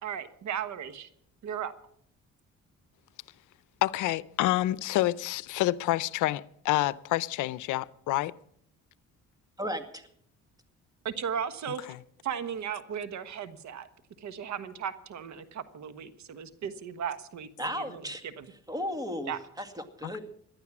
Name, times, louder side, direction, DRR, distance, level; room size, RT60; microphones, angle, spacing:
voice 1, 0.0-1.1 1.4-1.7 11.0-11.9 12.2-13.9 14.2-18.5 19.2-19.4, right 8 dB, 65° right, 1.4 m, -36 dB
voice 2, 3.8-8.3 11.9-12.0 20.0-20.1, left 16 dB, 90° left, 0.6 m, -28 dB
voice 3, 9.6-10.1 17.6-18.2 18.7-20.2, equal, 10° right, 2.1 m, -35 dB
18.0 x 12.0 x 6.1 m
cardioid pair, 90°, 30 cm